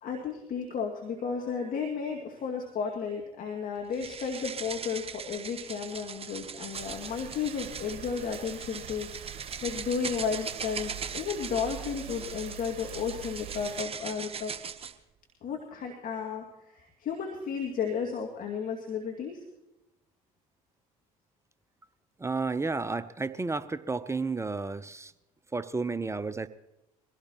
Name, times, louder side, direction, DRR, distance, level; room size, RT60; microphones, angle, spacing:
voice 1, 0.0-9.1 9.6-14.5 15.4-16.4 16.7-19.4, left 6 dB, 45° left, 1 dB, 2.2 m, -33 dB
sound 1, 3.9-14.9, right 6 dB, 30° right, 1.0 m, -40 dB
sound 2, 6.7-13.8, right 10 dB, 50° right, 1.4 m, -45 dB
voice 2, 22.2-25.1 25.5-26.5, right 3 dB, 15° right, 14 dB, 0.7 m, -32 dB
23.0 x 16.5 x 3.0 m, 0.93 s
hypercardioid pair, 60°, 19 cm